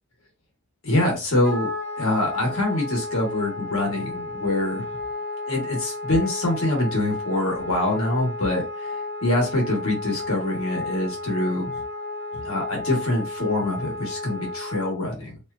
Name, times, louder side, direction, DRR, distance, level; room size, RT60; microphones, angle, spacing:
voice 1, 0.8-1.7 2.0-4.8 5.5-8.9 9.2-11.7 12.3-15.4, left 1 dB, 75° left, 0 dB, 1.3 m, -25 dB
Wind instrument woodwind instrument, 1.4-14.9, left 2 dB, 10° left, 1.1 m, -33 dB
2.8 x 2.3 x 2.3 m, 0.29 s
head